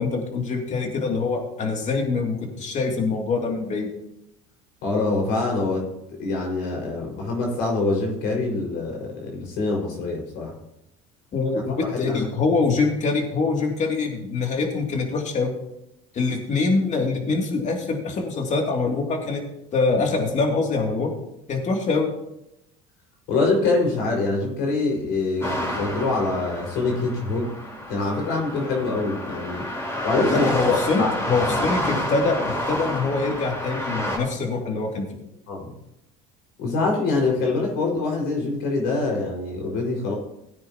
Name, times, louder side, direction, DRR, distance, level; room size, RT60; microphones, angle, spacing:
voice 1, 0.0-3.9 11.3-15.5 16.1-19.4 19.7-21.1 21.5-22.1 30.3-35.1, left 4 dB, 40° left, 2 dB, 2.7 m, -24 dB
voice 2, 4.8-5.9 6.2-10.5 11.8-12.3 23.3-27.5 27.9-29.7 30.0-31.1 35.5-35.7 36.6-40.1, left 3 dB, 70° left, -1 dB, 5.4 m, -24 dB
sound 1, 25.4-34.2, equal, 15° left, 4.1 m, -29 dB
17.5 x 9.4 x 3.0 m, 0.85 s
supercardioid pair, 95°, 18 cm